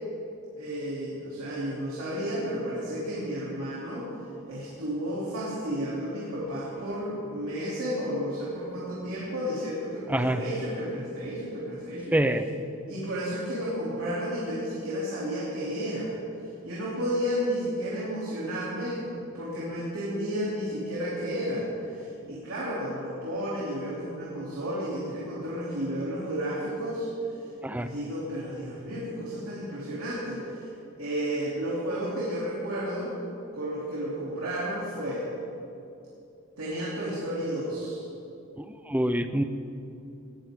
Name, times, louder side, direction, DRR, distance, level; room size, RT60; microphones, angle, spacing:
voice 1, 0.6-4.1 4.5-12.1 12.9-16.1 16.6-21.6 21.9-27.1 27.8-30.6 31.0-33.1 33.5-35.3 36.6-38.0, equal, 85° right, -8 dB, 3.2 m, -32 dB
voice 2, 10.1-10.4 12.1-12.5 27.6-27.9 38.9-39.4, right 1 dB, 10° right, 9 dB, 0.6 m, -25 dB
19.5 x 13.5 x 3.8 m, 2.7 s
head